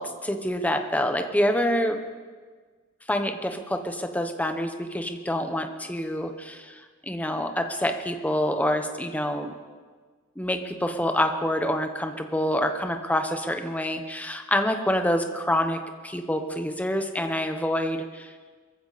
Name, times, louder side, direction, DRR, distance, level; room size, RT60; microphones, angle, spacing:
voice 1, 0.0-2.0 3.1-9.5 10.4-15.8 16.0-18.3, left 1 dB, 10° left, 5 dB, 1.1 m, -27 dB
23.0 x 15.0 x 4.2 m, 1.5 s
head